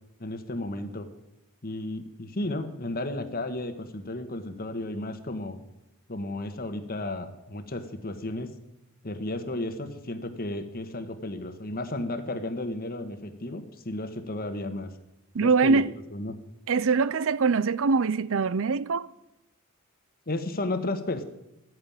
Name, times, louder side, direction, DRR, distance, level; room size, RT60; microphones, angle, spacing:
voice 1, 0.2-1.1 1.6-5.6 6.1-8.5 9.0-14.9 15.4-15.8 16.1-16.3 20.3-21.2, left 2 dB, 45° left, 1.4 m, -33 dB
voice 2, 15.3-15.9 16.7-19.1, right 4 dB, 70° right, 0.6 m, -23 dB
13.0 x 9.4 x 8.8 m
head